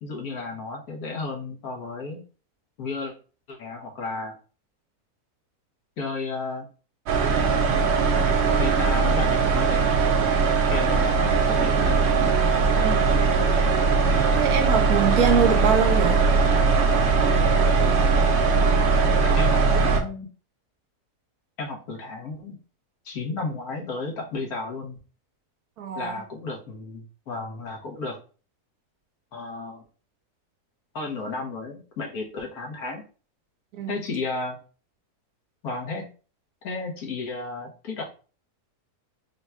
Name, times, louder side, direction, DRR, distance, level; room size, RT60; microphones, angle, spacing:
voice 1, 0.0-2.2 2.8-3.1 3.5-4.3 6.0-6.7 7.5-7.8 8.6-9.8 10.7-12.3 19.2-20.3 21.6-22.6 23.0-25.0 25.9-28.2 29.3-29.8 30.9-33.0 33.9-34.6 35.6-36.1 36.6-38.1, left 3 dB, 70° left, 1.5 m, -33 dB
sound 1, 7.1-20.0, right 4 dB, 55° right, 0.8 m, -20 dB
voice 2, 12.8-13.2 14.3-16.2 25.8-26.2 33.7-34.0, right 7 dB, 75° right, 1.1 m, -24 dB
3.8 x 2.2 x 4.2 m
omnidirectional pair, 1.7 m